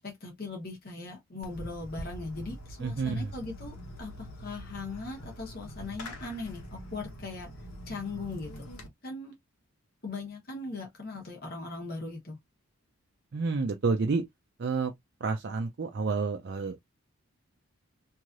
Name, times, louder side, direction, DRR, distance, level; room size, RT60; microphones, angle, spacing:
voice 1, 0.0-7.5 7.9-8.7 9.0-9.3 10.0-12.4, left 3 dB, 45° left, 1.1 m, -39 dB
Fireworks, 1.4-8.9, equal, 85° left, 1.2 m, -44 dB
voice 2, 2.8-3.3 13.3-14.2 14.6-14.9 15.2-16.8, right 4 dB, 50° right, 0.4 m, -29 dB
3.1 x 2.7 x 2.5 m
head